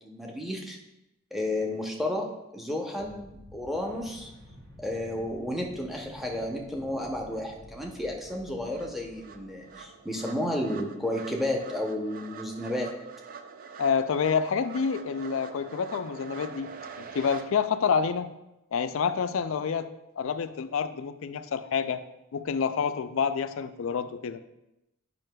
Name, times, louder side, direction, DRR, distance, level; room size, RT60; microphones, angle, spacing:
voice 1, 0.0-0.8 1.3-4.3 4.8-13.1, left 1 dB, ahead, 0 dB, 0.6 m, -32 dB
sound 1, 3.0-10.7, left 1 dB, 75° right, 2.4 m, -51 dB
sound 2, 7.3-7.4 7.8-17.4, right 5 dB, 40° right, 0.4 m, -45 dB
voice 2, 13.8-16.7 17.0-18.3 18.7-19.9 20.2-22.0 22.3-24.4, left 6 dB, 70° left, 11 dB, 0.4 m, -28 dB
9.0 x 5.7 x 2.2 m, 0.92 s
head